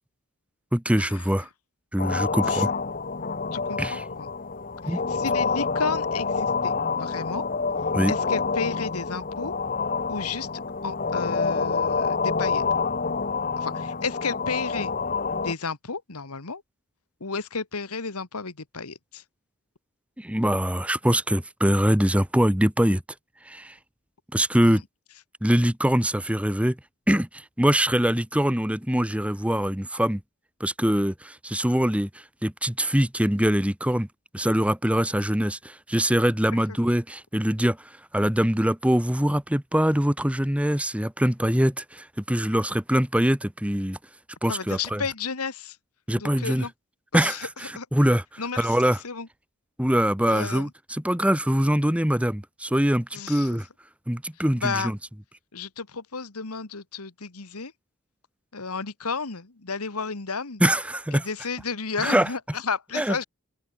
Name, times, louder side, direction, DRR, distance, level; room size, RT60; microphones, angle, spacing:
voice 1, 0.7-1.5 1.9-2.7 3.8-4.0 4.9-5.0 7.9-8.1 20.2-23.0 23.5-23.7 24.3-24.8 25.4-26.8 27.1-30.2 30.6-32.1 32.4-34.1 34.3-37.8 38.1-44.0 44.4-45.0 46.1-46.7 47.1-49.0 49.8-53.7 54.1-55.0 60.6-61.3 62.0-62.3 62.9-63.2, equal, 5° right, 1.3 m, -23 dB
sound 1, 2.0-15.5, left 4 dB, 40° left, 1.5 m, -27 dB
voice 2, 3.5-4.3 4.9-7.4 8.1-9.5 10.1-10.5 10.8-12.6 13.6-14.9 15.4-16.6 17.2-19.2 24.6-24.8 44.5-45.8 46.2-46.7 47.1-47.5 47.8-47.9 48.4-48.8 49.0-49.3 50.3-50.7 53.1-53.5 54.6-54.9 55.5-57.7 58.5-60.6 61.1-63.2, left 5 dB, 90° left, 1.8 m, -32 dB
open air
head